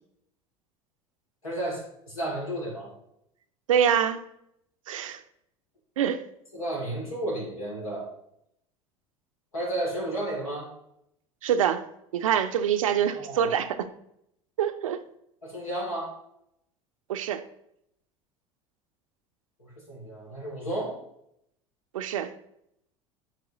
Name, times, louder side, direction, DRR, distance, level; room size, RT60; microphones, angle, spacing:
voice 1, 1.4-2.9 6.5-8.1 9.5-10.7 13.1-13.6 15.4-16.2 19.6-21.0, right 1 dB, 80° left, -3 dB, 2.8 m, -32 dB
voice 2, 3.7-4.2 4.9-5.2 6.0-6.2 11.4-11.8 12.1-13.9 14.6-15.0 17.1-17.4 21.9-22.3, right 9 dB, 70° right, 9 dB, 0.6 m, -25 dB
11.5 x 4.5 x 3.0 m, 0.76 s
figure-of-eight pair, 70°, 18 cm